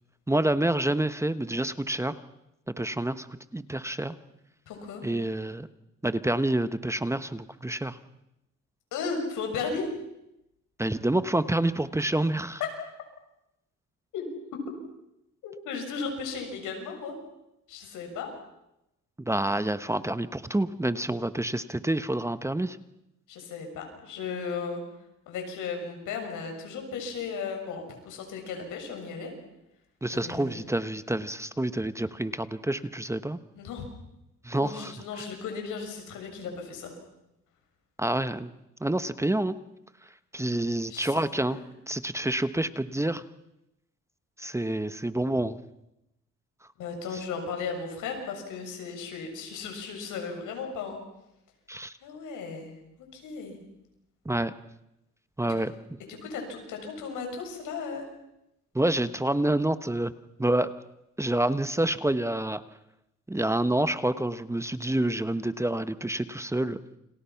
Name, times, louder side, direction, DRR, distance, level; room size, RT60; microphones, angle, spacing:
voice 1, 0.3-2.2 2.7-3.3 3.5-4.2 5.0-5.7 6.0-8.0 10.8-12.6 19.2-22.8 30.0-33.4 34.4-35.2 38.0-38.5 38.8-39.6 40.0-41.6 41.9-43.2 44.4-45.6 51.7-51.9 54.2-54.5 55.4-55.7 58.7-60.1 60.4-60.7 61.2-62.6 63.3-66.8, right 1 dB, 10° right, 12 dB, 1.1 m, -28 dB
voice 2, 4.7-5.0 8.9-9.9 12.6-12.7 14.1-14.3 14.5-14.6 15.4-17.2 17.7-18.3 23.3-24.8 25.3-29.3 30.1-30.6 33.6-33.9 34.5-36.9 40.9-41.7 46.8-51.0 52.0-52.7 53.1-53.6 55.4-55.6 56.1-58.1, left 5 dB, 85° left, 4 dB, 7.1 m, -35 dB
29.5 x 27.0 x 5.9 m, 0.87 s
cardioid pair, 90°, 30 cm